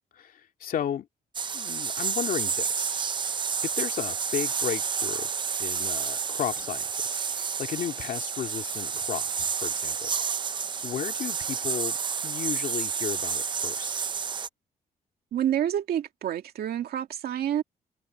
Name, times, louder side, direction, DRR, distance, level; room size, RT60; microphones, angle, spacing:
voice 1, 0.1-1.1 1.5-3.0 3.6-5.3 5.6-10.1 10.8-12.0 12.2-14.1, left 9 dB, 60° left, 2.3 m, -34 dB
sound 1, 1.3-14.5, right 6 dB, 30° right, 0.5 m, -30 dB
voice 2, 15.3-17.6, right 10 dB, 75° right, 2.1 m, -28 dB
open air
cardioid pair, 130°, 16 cm